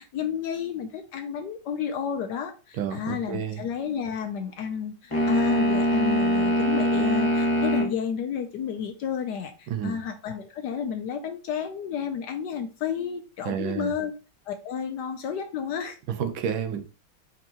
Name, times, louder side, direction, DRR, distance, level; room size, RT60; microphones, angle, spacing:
voice 1, 0.0-14.1 14.5-16.0, left 7 dB, 70° left, 1.1 m, -31 dB
voice 2, 2.8-3.6 9.7-10.0 13.4-13.9 16.1-16.8, right 8 dB, 80° right, 1.5 m, -30 dB
sound 1, 5.1-7.9, equal, 20° left, 1.3 m, -23 dB
5.0 x 3.6 x 2.8 m
omnidirectional pair, 2.2 m